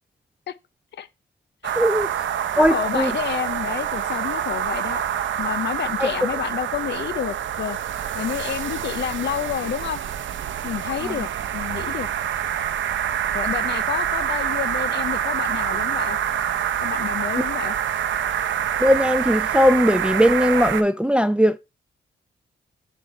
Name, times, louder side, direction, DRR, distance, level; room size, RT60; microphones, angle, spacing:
sound 1, 1.6-20.8, right 9 dB, 75° right, 0.6 m, -26 dB
voice 1, 1.8-2.1 2.6-3.1 6.0-6.1 11.0-11.1 18.8-21.6, equal, 5° right, 0.3 m, -18 dB
voice 2, 2.6-5.0 5.4-7.8 8.1-10.0 10.6-12.1 13.3-16.2 16.8-17.8, left 9 dB, 65° left, 0.5 m, -29 dB
6.3 x 5.1 x 4.5 m
wide cardioid pair, 125°, 20 cm